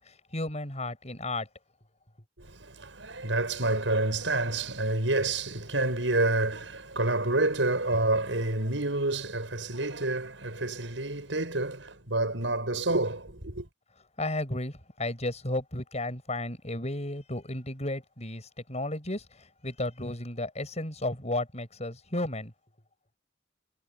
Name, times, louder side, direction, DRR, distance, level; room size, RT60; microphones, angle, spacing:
voice 1, 0.0-1.5 14.2-22.5, left 2 dB, 35° left, 6.8 m, -33 dB
voice 2, 2.4-13.7, right 2 dB, 85° right, 6.7 m, -28 dB
head